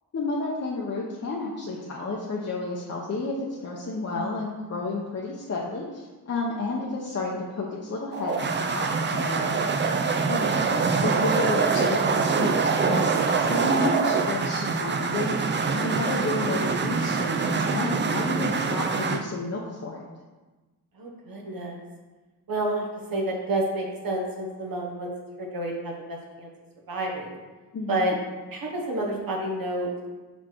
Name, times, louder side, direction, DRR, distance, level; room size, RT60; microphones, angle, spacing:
voice 1, 0.1-9.8 10.3-10.5 11.0-12.5 12.9-15.4 15.7-20.0 27.7-28.1, left 3 dB, 45° left, -4 dB, 0.8 m, -31 dB
sound 1, 8.1-19.2, right 4 dB, 30° right, 0.4 m, -24 dB
voice 2, 21.0-21.8 22.5-25.1 25.4-26.5 26.9-27.4 27.9-28.2 28.5-29.9, right 1 dB, 65° right, -1 dB, 1.1 m, -29 dB
5.9 x 4.3 x 4.4 m, 1.2 s
wide cardioid pair, 150°, 36 cm